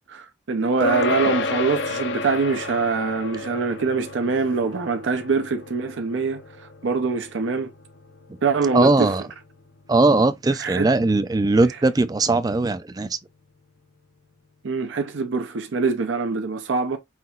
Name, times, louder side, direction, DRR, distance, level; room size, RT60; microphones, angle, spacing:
voice 1, 0.1-7.7 8.4-9.1 10.6-10.9 14.6-17.0, right 4 dB, 80° right, 0.6 m, -24 dB
sound 1, 0.8-10.5, left 3 dB, 70° left, 0.7 m, -31 dB
voice 2, 8.7-9.2 9.9-13.2, right 2 dB, 20° right, 0.3 m, -19 dB
5.7 x 2.9 x 2.3 m
head